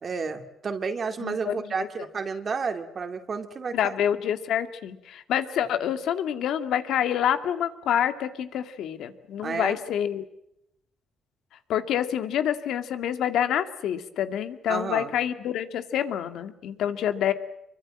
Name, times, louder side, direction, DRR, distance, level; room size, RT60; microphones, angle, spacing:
voice 1, 0.0-3.9 9.4-9.8 14.7-15.1, right 5 dB, 45° right, 6 dB, 2.4 m, -31 dB
voice 2, 1.2-1.9 3.7-10.2 11.7-17.3, left 10 dB, 80° left, 10 dB, 2.0 m, -27 dB
26.0 x 23.5 x 7.6 m, 0.82 s
cardioid pair, 90°, 0 cm